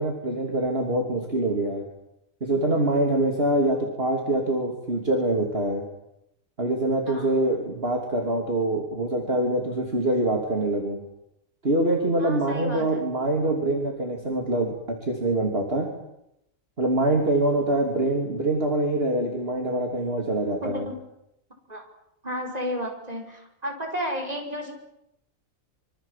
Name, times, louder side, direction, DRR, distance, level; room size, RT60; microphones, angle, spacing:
voice 1, 0.0-1.8 2.4-5.8 6.6-11.0 11.6-14.7 15.0-15.9 16.8-20.9, right 1 dB, 45° right, 1 dB, 3.5 m, -24 dB
voice 2, 12.2-13.0 20.6-21.0 21.7-21.8 22.2-24.7, equal, 30° right, 1 dB, 5.7 m, -32 dB
26.0 x 25.0 x 7.6 m, 0.82 s
omnidirectional pair, 1.4 m